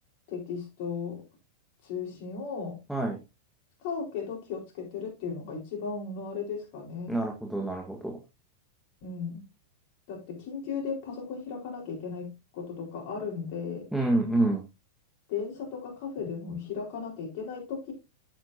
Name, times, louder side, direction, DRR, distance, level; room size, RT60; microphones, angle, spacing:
voice 1, 0.3-1.2 1.8-2.8 3.8-7.2 9.0-9.4 10.1-13.9 15.3-17.9, left 5 dB, 55° left, 0 dB, 4.4 m, -36 dB
voice 2, 7.1-8.2 13.9-14.6, right 2 dB, ahead, 1 dB, 1.6 m, -27 dB
9.1 x 8.7 x 2.7 m, 0.24 s
hypercardioid pair, 100°, 0 cm